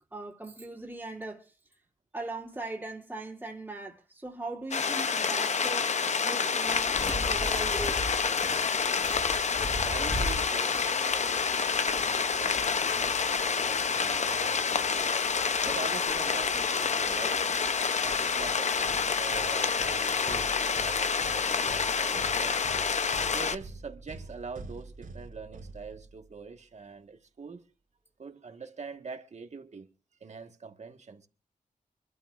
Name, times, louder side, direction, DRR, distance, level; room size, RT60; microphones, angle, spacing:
voice 1, 0.1-1.5 2.1-5.9 6.2-8.0, right 2 dB, 10° right, 2.6 m, -39 dB
sound 1, 4.7-23.6, left 5 dB, 55° left, 0.7 m, -28 dB
sound 2, 6.6-18.8, left 1 dB, 35° left, 3.8 m, -41 dB
voice 2, 9.8-17.5 18.0-22.7 23.0-27.6 28.2-29.9 30.2-31.3, right 4 dB, 50° right, 1.6 m, -44 dB
sound 3, 18.4-26.4, right 3 dB, 90° right, 3.8 m, -46 dB
25.0 x 13.0 x 2.5 m
wide cardioid pair, 120°, 15 cm